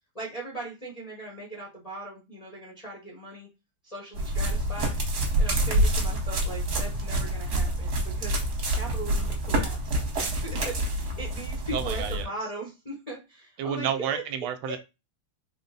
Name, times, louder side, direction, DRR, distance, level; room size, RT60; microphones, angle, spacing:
voice 1, 0.1-3.5 3.8-5.0 5.4-10.0 10.3-14.2 14.6-14.8, right 2 dB, 30° left, -4 dB, 0.6 m, -39 dB
sound 1, 4.2-12.2, right 1 dB, 55° right, 1.4 m, -27 dB
voice 2, 11.7-12.3 13.6-14.8, right 8 dB, 80° right, 9 dB, 1.3 m, -30 dB
3.8 x 2.0 x 3.9 m, 0.26 s
omnidirectional pair, 2.3 m